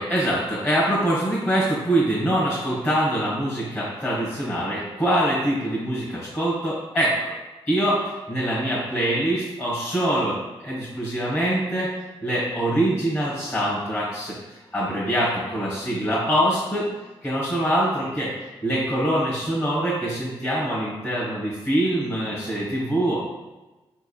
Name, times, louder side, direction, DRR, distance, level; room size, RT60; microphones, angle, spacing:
voice 1, 0.0-7.1 7.7-8.0 8.3-11.9 12.2-16.9 17.2-18.3 18.6-23.2, right 1 dB, 25° left, -9 dB, 1.4 m, -24 dB
4.9 x 3.5 x 2.3 m, 1.1 s
wide cardioid pair, 150°, 10 cm